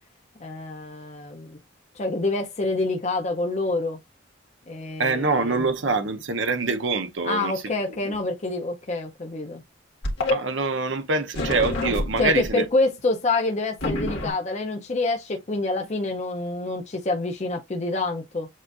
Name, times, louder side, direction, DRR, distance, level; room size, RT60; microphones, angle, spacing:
voice 1, 0.4-1.6 1.9-4.0 4.7-5.6 7.2-9.6 12.2-18.5, left 2 dB, 35° left, 0.6 m, -27 dB
voice 2, 5.0-7.5 7.9-8.2 10.3-12.6, right 3 dB, 70° right, 0.8 m, -25 dB
sound 1, 10.0-10.3 11.3-12.5 13.8-14.3, left 2 dB, 65° left, 1.7 m, -27 dB
7.4 x 2.5 x 2.5 m
head